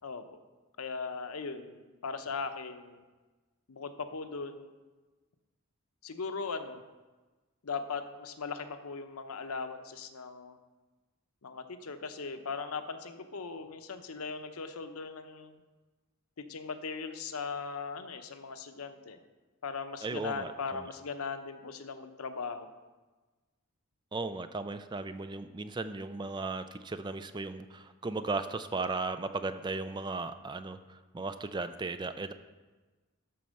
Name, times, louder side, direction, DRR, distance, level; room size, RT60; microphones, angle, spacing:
voice 1, 0.8-3.0 3.7-4.7 6.0-6.8 7.6-10.6 11.4-15.6 16.5-19.2 19.6-22.7, left 4 dB, 90° left, 8 dB, 0.8 m, -39 dB
voice 2, 20.0-20.9 24.1-32.3, right 3 dB, 20° right, 10 dB, 0.4 m, -36 dB
12.5 x 4.4 x 6.4 m, 1.3 s
head